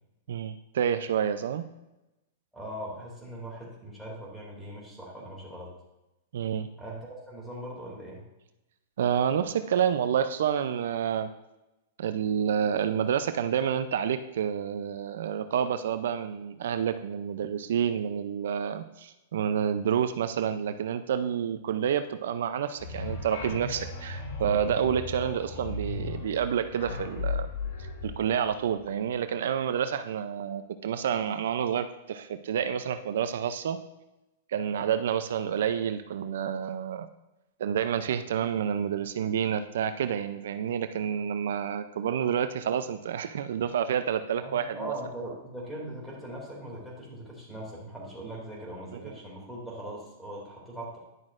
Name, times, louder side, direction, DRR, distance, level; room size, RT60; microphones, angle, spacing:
voice 1, 0.3-1.7 6.3-6.7 9.0-11.3 12.0-27.5 28.0-33.8 34.5-37.1 37.6-44.9 48.9-49.1, right 8 dB, 75° right, 10 dB, 0.4 m, -29 dB
voice 2, 2.5-5.7 6.8-8.2 44.4-51.0, right 1 dB, ahead, -4 dB, 2.4 m, -40 dB
sound 1, 22.8-29.0, left 3 dB, 55° left, 1.6 m, -36 dB
10.5 x 6.2 x 2.5 m, 0.97 s
hypercardioid pair, 150°, 0 cm